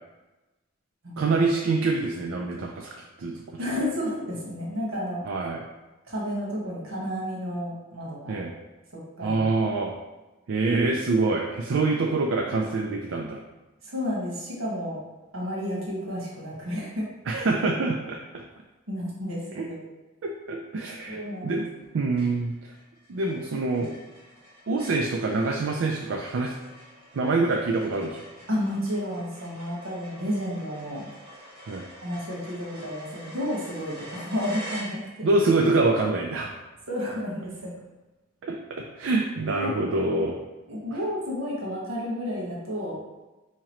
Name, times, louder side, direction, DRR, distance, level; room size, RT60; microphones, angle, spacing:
voice 1, 1.2-2.9 3.2-3.6 5.3-5.6 8.3-8.5 9.2-10.0 10.5-13.4 17.3-18.4 19.5-19.7 20.2-21.7 21.9-22.7 23.1-23.9 24.7-26.5 27.1-28.2 31.7-31.8 35.2-36.5 38.4-40.4, right 3 dB, 70° right, 1 dB, 0.4 m, -25 dB
voice 2, 3.6-5.3 6.1-8.4 8.9-9.5 13.8-15.0 15.3-17.1 18.9-19.8 21.1-21.7 28.5-31.1 32.0-35.3 36.9-37.7 39.6-39.9 40.7-43.0, equal, 90° right, -4 dB, 1.3 m, -31 dB
sound 1, 21.0-21.4 21.8-21.9 22.2-35.4, equal, 25° right, 1.4 m, -46 dB
4.8 x 2.9 x 3.0 m, 1.1 s
head